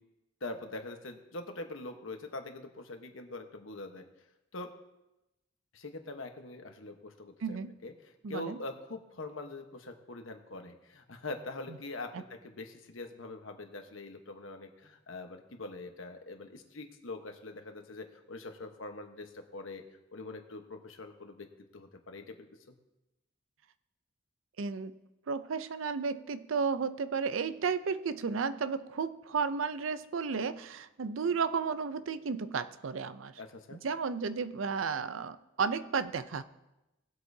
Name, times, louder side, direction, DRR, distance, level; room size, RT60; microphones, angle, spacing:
voice 1, 0.4-4.0 4.5-4.7 5.7-7.6 7.8-7.9 8.3-19.8 20.1-21.5 21.7-22.7 33.4-33.8, left 2 dB, 85° left, 5 dB, 1.1 m, -43 dB
voice 2, 7.4-7.8 8.2-8.6 11.7-11.8 12.1-12.2 24.6-25.0 25.3-33.3 33.7-36.4, right 5 dB, 80° right, 13 dB, 0.5 m, -33 dB
18.5 x 8.1 x 2.7 m, 0.96 s
head